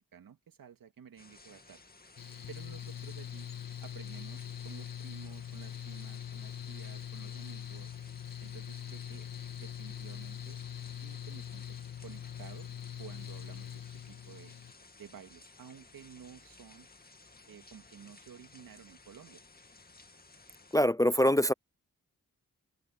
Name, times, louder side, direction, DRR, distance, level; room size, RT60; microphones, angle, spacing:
voice 1, 0.0-1.8 2.5-3.5 3.8-7.9 8.4-9.3 9.5-10.6 11.0-11.8 12.0-12.7 13.0-14.5 15.0-16.9 17.5-19.4, right 8 dB, 85° right, 2.6 m, -52 dB
sound 1, 1.2-20.8, left 3 dB, 30° left, 2.3 m, -57 dB
Mechanical fan, 2.2-14.7, left 9 dB, 75° left, 2.4 m, -43 dB
voice 2, 20.7-21.5, equal, 10° left, 0.4 m, -24 dB
open air
cardioid pair, 70°, 33 cm